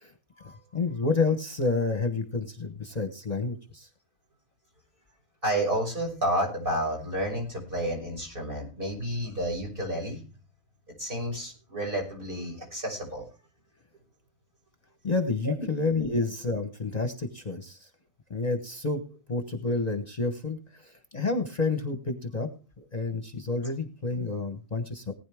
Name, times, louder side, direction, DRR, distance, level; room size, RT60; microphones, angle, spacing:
voice 1, 0.7-3.9 15.0-17.9 18.3-19.0 19.3-22.5 22.9-25.1, left 3 dB, 35° left, 6 dB, 1.2 m, -29 dB
voice 2, 5.4-10.2 11.0-13.2 15.4-15.7, right 1 dB, 45° right, -1 dB, 6.6 m, -30 dB
19.0 x 9.9 x 3.5 m, 0.35 s
omnidirectional pair, 1.2 m